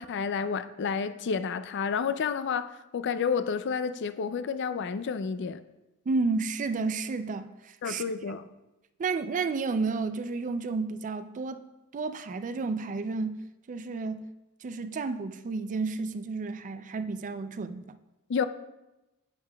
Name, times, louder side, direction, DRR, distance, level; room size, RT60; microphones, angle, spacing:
voice 1, 0.0-5.6 7.8-8.4 18.3-18.5, left 6 dB, 55° left, 0.4 m, -30 dB
voice 2, 6.1-8.0 9.0-11.6 11.9-14.3 14.6-18.0, right 4 dB, 35° right, 0.4 m, -31 dB
11.0 x 8.7 x 2.3 m
head